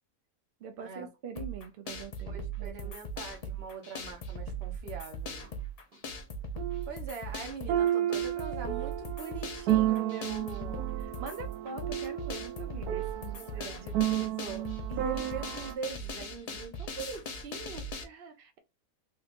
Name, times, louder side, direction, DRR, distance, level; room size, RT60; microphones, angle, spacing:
voice 1, 0.6-3.0 11.0-14.3 18.0-18.6, right 5 dB, 70° right, 0.5 m, -44 dB
sound 1, 1.4-18.0, right 2 dB, 85° left, 0.3 m, -39 dB
voice 2, 2.3-5.5 6.9-11.0 13.3-17.9, right 5 dB, 50° right, 0.9 m, -42 dB
sound 2, 5.4-5.5 6.6-6.9 7.7-15.7, right 12 dB, 90° right, 1.1 m, -32 dB
3.3 x 3.0 x 2.4 m
omnidirectional pair, 1.5 m